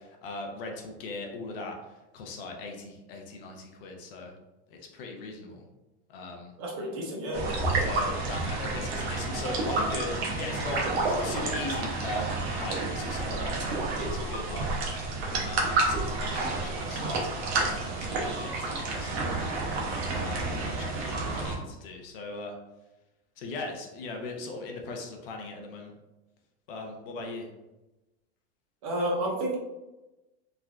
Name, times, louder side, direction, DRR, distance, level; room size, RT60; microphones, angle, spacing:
voice 1, 0.0-4.3 4.7-5.7 6.1-6.5 7.8-14.7 15.4-19.4 20.1-22.5 23.4-25.9 26.7-27.5, left 3 dB, 55° left, 2 dB, 0.6 m, -39 dB
voice 2, 6.6-7.5 28.8-29.5, right 1 dB, 30° right, -2 dB, 0.5 m, -30 dB
sound 1, 7.3-21.6, right 3 dB, 60° right, 0.8 m, -30 dB
3.2 x 2.5 x 2.3 m, 1.0 s
supercardioid pair, 175°, 34 cm